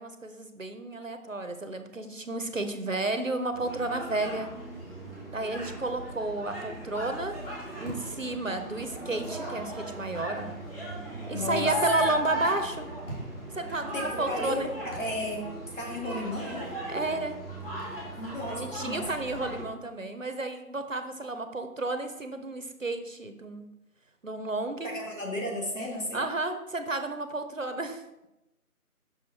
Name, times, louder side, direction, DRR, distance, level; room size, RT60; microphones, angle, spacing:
voice 1, 0.0-4.5 5.3-7.4 7.8-10.6 11.3-12.9 13.5-14.7 16.9-17.4 18.5-23.7 24.2-24.9 26.1-28.0, right 2 dB, 60° right, 8 dB, 0.7 m, -32 dB
sound 1, 3.5-19.6, equal, 40° left, 2.2 m, -37 dB
voice 2, 11.3-11.7 13.9-16.7 18.2-19.1 24.8-26.3, left 1 dB, 55° left, -2 dB, 2.1 m, -34 dB
7.1 x 6.0 x 2.8 m, 0.95 s
figure-of-eight pair, 175°, 45 cm